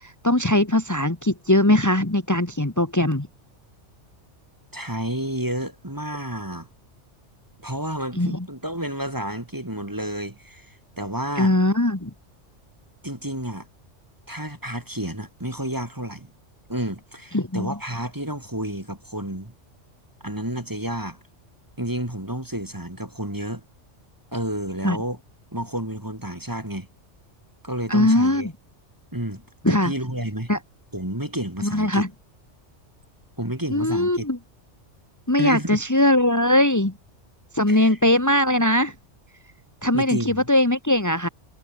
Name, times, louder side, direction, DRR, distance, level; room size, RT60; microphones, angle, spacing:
voice 1, 0.0-3.3 8.2-8.5 11.4-12.1 17.3-17.7 24.8-25.0 27.9-28.5 29.6-29.9 30.5-30.6 31.6-32.1 33.7-34.4 35.3-36.9 37.5-38.9 39.8-41.3, left 1 dB, 15° left, 1.9 m, -20 dB
voice 2, 4.7-6.7 7.6-11.5 13.0-13.7 14.3-16.3 16.7-19.5 20.2-21.2 21.8-23.6 24.3-25.2 25.5-26.9 27.6-28.5 29.1-30.5 30.9-32.1 33.4-34.3 35.4-35.8 37.7-38.0 39.9-40.5, right 1 dB, 15° right, 3.1 m, -30 dB
omnidirectional pair, 1.2 m